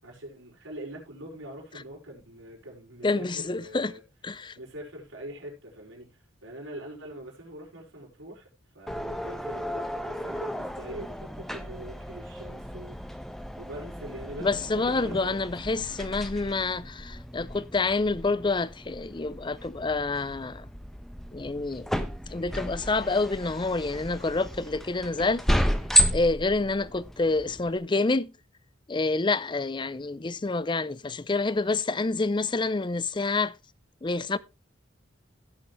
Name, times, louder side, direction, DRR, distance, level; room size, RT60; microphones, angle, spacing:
voice 1, 0.0-4.0 4.5-8.5 8.7-13.2 13.6-15.4, right 1 dB, 80° right, 5.3 m, -43 dB
voice 2, 3.0-4.6 14.4-20.7 21.3-21.9 22.3-25.4 26.1-28.3 28.9-33.5 34.0-34.4, left 3 dB, 25° left, 0.5 m, -28 dB
sound 1, 8.9-27.8, equal, ahead, 0.9 m, -32 dB
16.5 x 6.7 x 3.2 m
head